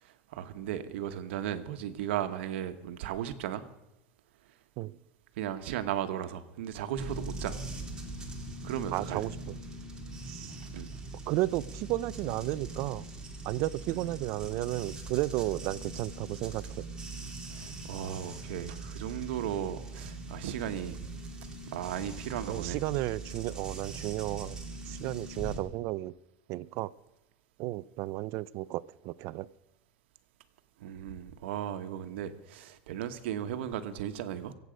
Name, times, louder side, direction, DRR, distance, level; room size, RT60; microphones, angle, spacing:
voice 1, 0.0-3.6 5.4-7.6 8.6-9.2 10.7-10.9 13.9-14.0 17.5-21.2 21.7-22.8 30.8-34.5, right 10 dB, 85° right, 9 dB, 1.2 m, -36 dB
sound 1, 7.0-25.6, right 2 dB, 10° right, 2.4 m, -42 dB
voice 2, 8.9-9.5 10.3-10.5 11.3-13.0 13.5-16.8 22.5-24.6 24.9-26.1 26.5-26.9 27.6-29.5, right 17 dB, 50° right, 18 dB, 0.5 m, -33 dB
24.5 x 8.2 x 5.2 m, 0.90 s
supercardioid pair, 145°, 6 cm